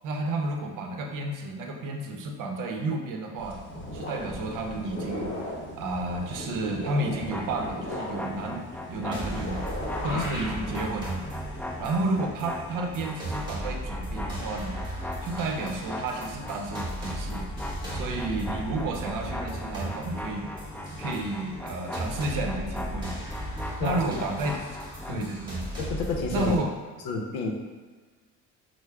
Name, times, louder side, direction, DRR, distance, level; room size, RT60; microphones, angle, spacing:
voice 1, 0.0-3.6 3.9-5.3 5.8-9.6 10.0-11.2 11.8-14.8 15.2-17.5 17.9-20.5 20.9-23.1 23.8-24.6 25.1-25.7 26.3-26.7, right 2 dB, 60° right, 3 dB, 0.7 m, -31 dB
sound 1, 3.4-12.2, left 1 dB, 35° left, 1.1 m, -37 dB
sound 2, 7.2-25.3, left 1 dB, 5° left, 0.5 m, -39 dB
sound 3, 9.1-26.6, right 1 dB, 15° right, 1.4 m, -37 dB
voice 2, 23.8-24.3 25.1-25.3 25.8-26.6 27.0-27.5, left 4 dB, 75° left, 2 dB, 0.7 m, -30 dB
6.1 x 2.1 x 2.3 m, 1.4 s
supercardioid pair, 75°, 36 cm